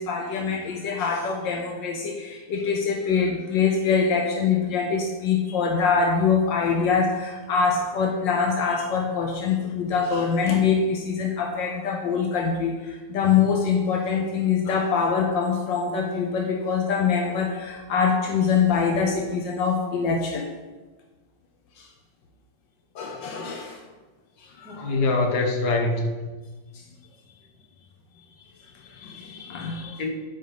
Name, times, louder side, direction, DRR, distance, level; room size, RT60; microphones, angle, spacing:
voice 1, 0.0-20.5 21.8-21.9 22.9-23.8 24.6-24.9 28.8-30.0, left 6 dB, 80° left, 2 dB, 1.6 m, -24 dB
voice 2, 24.7-26.3 30.0-30.1, left 3 dB, 60° left, 2 dB, 1.8 m, -24 dB
13.5 x 5.3 x 4.9 m, 1.3 s
omnidirectional pair, 2.0 m